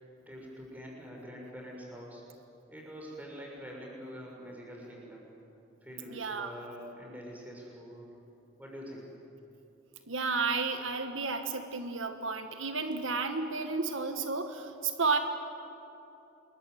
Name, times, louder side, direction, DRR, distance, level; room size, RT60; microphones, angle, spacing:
voice 1, 0.3-2.2 2.7-5.3 5.8-8.2 8.6-9.1, equal, 10° right, -2 dB, 6.5 m, -45 dB
voice 2, 6.1-6.5 10.1-15.2, right 4 dB, 85° right, 7 dB, 1.7 m, -32 dB
28.0 x 22.0 x 9.5 m, 2.9 s
head